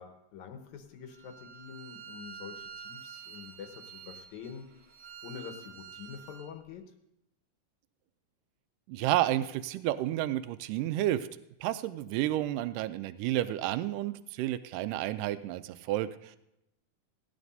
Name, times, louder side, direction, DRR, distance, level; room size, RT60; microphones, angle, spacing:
voice 1, 0.0-4.7 5.2-6.9, left 7 dB, 70° left, 5 dB, 2.2 m, -46 dB
Bowed string instrument, 1.1-6.5, right 7 dB, 40° right, 1.5 m, -48 dB
voice 2, 8.9-11.3 11.6-16.3, right 14 dB, 85° right, 12 dB, 2.1 m, -31 dB
18.0 x 11.5 x 2.7 m, 0.84 s
omnidirectional pair, 3.7 m